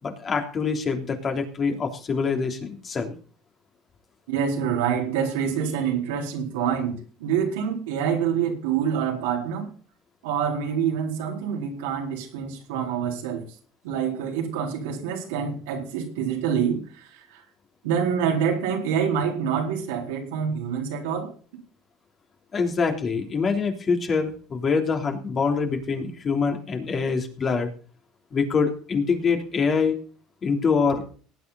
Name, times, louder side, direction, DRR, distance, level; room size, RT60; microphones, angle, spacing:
voice 1, 0.0-3.1 22.5-27.7 28.3-30.0 30.4-31.0, left 5 dB, 35° left, 3.3 m, -25 dB
voice 2, 4.3-9.7 10.2-13.4 13.8-17.4 17.8-21.3, right 7 dB, 90° right, 4.2 m, -26 dB
18.5 x 9.2 x 4.1 m
supercardioid pair, 100°, 0 cm